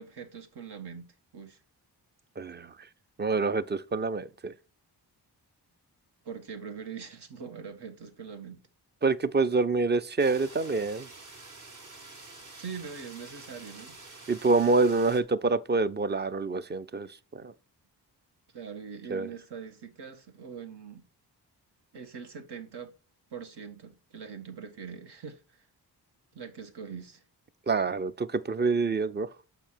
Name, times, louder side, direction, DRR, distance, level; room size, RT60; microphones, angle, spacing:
voice 1, 0.0-1.6 6.2-8.7 12.6-13.9 18.5-21.0 21.9-22.9 23.3-25.6 26.3-27.2, right 6 dB, 75° right, 1.6 m, -42 dB
voice 2, 2.4-2.7 3.2-4.5 9.0-11.1 14.3-17.5 19.1-19.3 27.7-29.3, right 3 dB, 25° right, 0.5 m, -26 dB
sound 1, 10.2-15.2, right 3 dB, 45° right, 1.9 m, -48 dB
7.0 x 5.4 x 4.5 m
cardioid pair, 80°, 41 cm